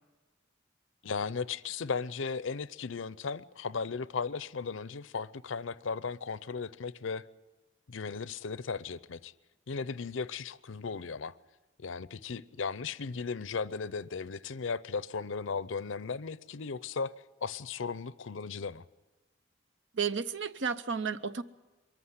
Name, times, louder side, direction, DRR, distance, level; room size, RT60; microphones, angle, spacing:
voice 1, 1.0-7.2 7.9-9.3 9.7-11.4 11.8-17.1 17.4-18.8, left 5 dB, 70° left, 0.6 m, -36 dB
voice 2, 19.9-21.4, right 6 dB, 65° right, 0.7 m, -32 dB
23.0 x 14.5 x 9.7 m
head